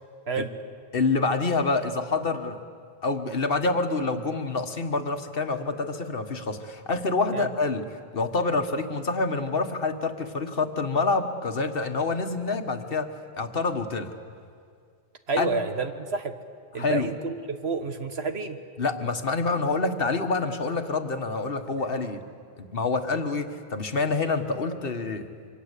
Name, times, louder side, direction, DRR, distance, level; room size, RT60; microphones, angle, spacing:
voice 1, 0.9-2.6 3.0-7.8 8.1-14.1 15.4-15.5 16.8-17.1 18.8-22.2 22.6-25.3, left 3 dB, 55° left, 7 dB, 1.7 m, -27 dB
voice 2, 15.3-16.3 16.7-18.6, right 4 dB, 65° right, 8 dB, 1.8 m, -29 dB
27.0 x 25.5 x 8.4 m, 2.2 s
omnidirectional pair, 1.2 m